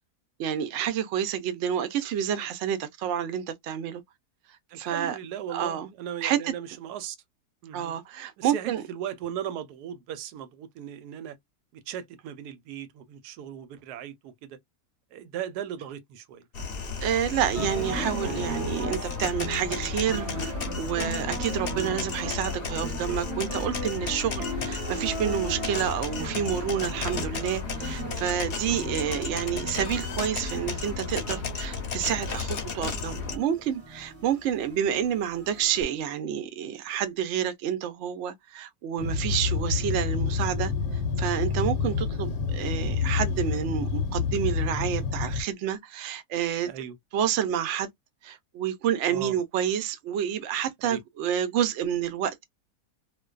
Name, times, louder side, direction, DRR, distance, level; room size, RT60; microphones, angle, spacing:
voice 1, 0.4-4.0 4.8-5.2 5.5-5.9 6.2-6.4 7.7-8.8 17.0-40.7 41.2-46.7 47.1-47.9 48.2-52.4, right 9 dB, 65° right, 0.7 m, -29 dB
voice 2, 4.7-7.2 7.6-8.0 8.4-11.4 11.7-14.6 15.1-16.4 46.7-47.0 49.1-49.4 50.8-51.0, right 10 dB, 90° right, 1.1 m, -37 dB
sound 1, 16.5-33.4, left 5 dB, 55° left, 0.7 m, -34 dB
sound 2, 17.5-35.8, right 1 dB, 30° right, 0.8 m, -37 dB
sound 3, 39.0-45.4, left 5 dB, 75° left, 1.0 m, -28 dB
2.5 x 2.3 x 2.2 m
omnidirectional pair, 1.6 m